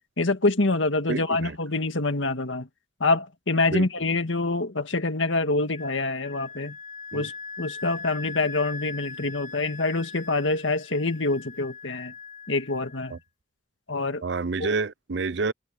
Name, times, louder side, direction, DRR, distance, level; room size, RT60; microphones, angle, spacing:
voice 1, 0.2-2.7 3.0-6.8 7.1-7.3 7.6-12.1 12.5-13.2 13.9-14.2 14.6-14.7, left 2 dB, 85° left, 1.9 m, -26 dB
voice 2, 1.1-1.6 3.7-3.9 7.1-7.3 13.1-13.2 14.2-15.5, right 4 dB, 65° right, 0.6 m, -28 dB
Wind instrument woodwind instrument, 5.7-13.2, left 4 dB, 45° left, 1.6 m, -41 dB
head